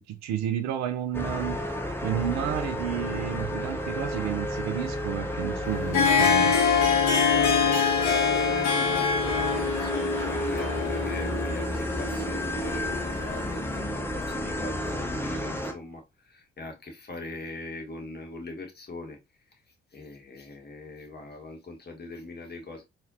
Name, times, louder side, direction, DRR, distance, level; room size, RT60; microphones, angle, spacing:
voice 1, 0.0-1.6 2.0-6.5, right 10 dB, 60° right, 0.6 m, -31 dB
sound 1, 1.1-15.7, equal, 5° left, 0.8 m, -31 dB
Harp, 5.6-13.4, left 6 dB, 60° left, 0.9 m, -25 dB
voice 2, 7.2-19.2 19.9-22.8, left 2 dB, 30° left, 1.3 m, -40 dB
4.0 x 2.8 x 2.6 m
figure-of-eight pair, 40°, 31 cm